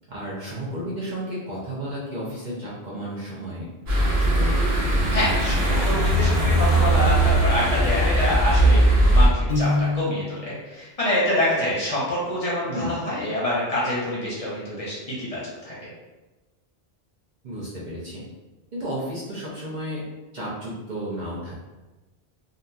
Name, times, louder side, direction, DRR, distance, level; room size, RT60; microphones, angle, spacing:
voice 1, 0.1-4.6 12.7-13.0 17.4-18.2 18.7-20.0 20.3-21.5, equal, 50° right, -6 dB, 0.7 m, -33 dB
sound 1, 3.9-9.3, right 1 dB, 70° right, 1.1 m, -19 dB
voice 2, 5.1-15.7, left 1 dB, 40° left, -7 dB, 0.8 m, -26 dB
Piano, 9.5-10.5, left 3 dB, 80° left, 0.8 m, -25 dB
2.9 x 2.4 x 2.3 m, 1.1 s
omnidirectional pair, 1.1 m